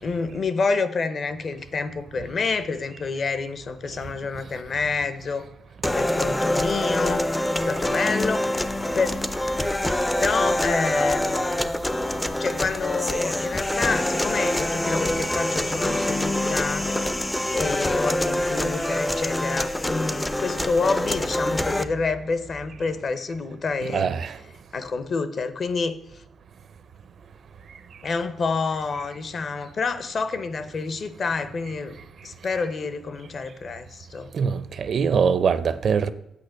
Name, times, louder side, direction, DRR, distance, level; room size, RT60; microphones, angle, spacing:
voice 1, 0.0-5.5 5.9-7.3 7.6-8.5 8.9-9.1 10.2-11.5 12.4-16.9 17.5-24.1 24.7-26.0 28.0-32.0 32.2-34.3, left 4 dB, 40° left, 0.7 m, -28 dB
sound 1, 5.8-21.8, left 1 dB, 10° left, 0.4 m, -25 dB
voice 2, 23.9-24.3 34.3-36.1, right 6 dB, 50° right, 0.5 m, -22 dB
8.5 x 6.4 x 6.4 m
wide cardioid pair, 155°, 0 cm